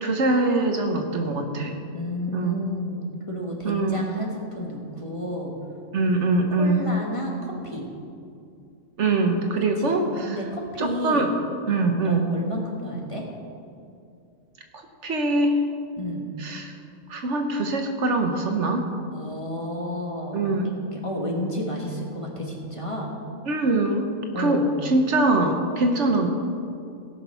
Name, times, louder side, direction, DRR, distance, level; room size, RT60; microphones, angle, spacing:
voice 1, 0.0-1.7 2.3-2.6 3.6-4.1 5.9-6.9 9.0-10.4 10.8-11.3 11.7-12.3 15.0-15.6 16.4-16.7 17.1-18.9 20.3-20.7 23.5-24.1 24.4-26.3, right 2 dB, 65° right, 4 dB, 1.2 m, -23 dB
voice 2, 1.9-5.5 6.6-7.9 9.8-10.0 10.2-11.3 12.0-13.2 16.0-16.3 19.1-23.1 24.3-24.7, equal, 25° left, -1 dB, 1.5 m, -31 dB
17.0 x 6.1 x 5.6 m, 2.5 s
omnidirectional pair, 1.4 m